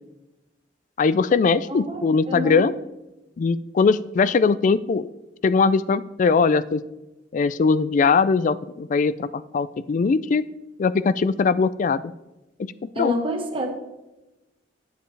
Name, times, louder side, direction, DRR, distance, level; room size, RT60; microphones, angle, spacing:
voice 1, 1.0-2.7 3.4-5.1 5.4-6.8 7.3-10.5 10.8-12.0 12.6-13.1, left 4 dB, 45° left, 17 dB, 0.3 m, -21 dB
voice 2, 2.3-2.6 13.0-13.7, equal, 30° right, 1 dB, 1.4 m, -27 dB
9.2 x 7.8 x 3.3 m, 1.0 s
head